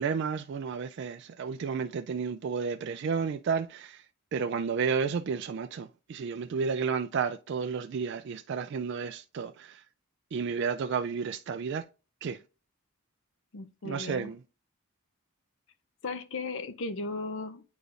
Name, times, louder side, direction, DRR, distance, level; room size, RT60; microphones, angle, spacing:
voice 1, 0.0-4.0 4.3-9.8 10.3-11.8 12.2-12.4 13.8-14.4, right 5 dB, 55° right, 0.3 m, -32 dB
voice 2, 13.5-14.3 16.0-17.6, left 3 dB, 60° left, 0.6 m, -36 dB
9.6 x 4.0 x 2.5 m
head